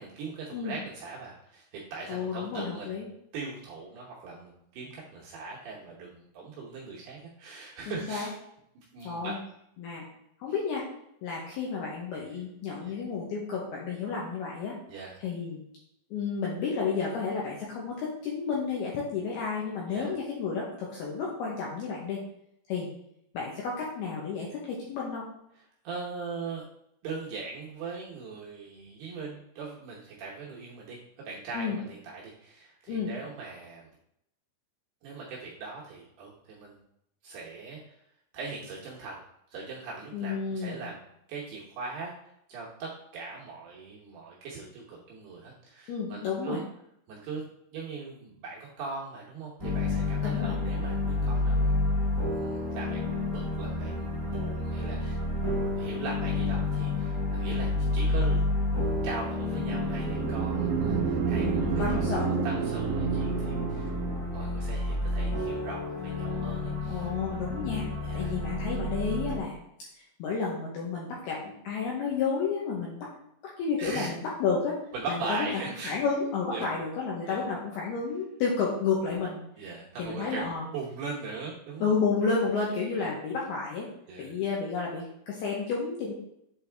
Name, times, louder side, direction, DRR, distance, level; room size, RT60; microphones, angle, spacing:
voice 1, 0.0-3.0 3.3-8.3 8.9-9.3 12.1-12.3 12.8-12.9 14.9-15.1 19.9-20.1 25.8-26.6 27.0-31.0 31.3-33.9 35.0-36.8 37.2-37.9 38.3-39.2 39.5-41.0 41.3-42.1 42.5-46.6 47.1-47.4 47.7-51.7 52.3-55.2 55.8-58.4 59.0-63.9 64.3-67.1 68.0-68.3 73.8-74.1 74.9-76.0 76.5-76.7 77.3-77.4 79.6-81.9 83.0-83.1 84.1-84.3, right 4 dB, 70° right, -4 dB, 2.5 m, -40 dB
voice 2, 2.1-3.1 7.9-8.3 9.0-9.4 9.8-10.1 10.4-10.9 11.2-14.7 15.2-15.6 16.1-22.2 22.7-22.9 23.3-25.3 31.5-31.8 32.9-33.1 40.1-40.8 45.9-46.6 50.2-50.5 61.3-62.5 66.9-67.9 68.1-69.6 70.2-73.1 73.6-74.8 75.1-79.7 80.0-80.6 81.8-83.9 84.2-86.1, left 5 dB, 75° left, -4 dB, 2.4 m, -31 dB
sound 1, 49.6-69.4, left 2 dB, 20° left, 0.4 m, -30 dB
sound 2, 59.5-64.4, right 7 dB, 90° right, 2.4 m, -30 dB
8.0 x 4.1 x 3.4 m, 0.76 s
omnidirectional pair, 5.7 m